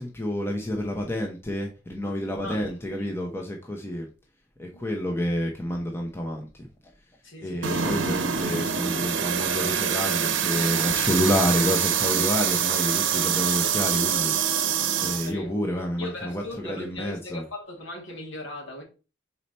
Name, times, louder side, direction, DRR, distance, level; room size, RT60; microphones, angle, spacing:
voice 1, 0.0-4.1 4.6-6.7 7.4-14.7 15.0-17.4, left 1 dB, 10° left, 0.9 m, -29 dB
voice 2, 2.4-3.1 4.7-5.1 7.2-8.0 14.9-15.6 16.0-18.8, left 1 dB, 65° left, 2.7 m, -39 dB
sound 1, 7.6-15.3, right 8 dB, 65° right, 0.8 m, -25 dB
4.9 x 4.3 x 5.5 m
head